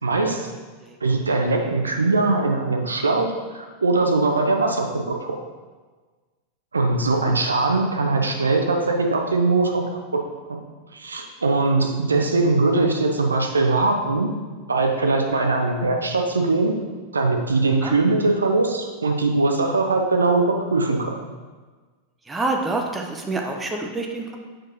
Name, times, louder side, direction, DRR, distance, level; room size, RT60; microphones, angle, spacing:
voice 1, 0.0-0.5 1.0-5.4 6.7-10.0 10.5-10.6 10.9-14.3 14.7-16.7 17.1-21.1, right 3 dB, 75° right, 3 dB, 0.6 m, -21 dB
voice 2, 22.3-24.4, right 2 dB, 10° right, 2 dB, 0.6 m, -27 dB
7.5 x 4.6 x 2.8 m, 1.4 s
figure-of-eight pair, 90°, 0 cm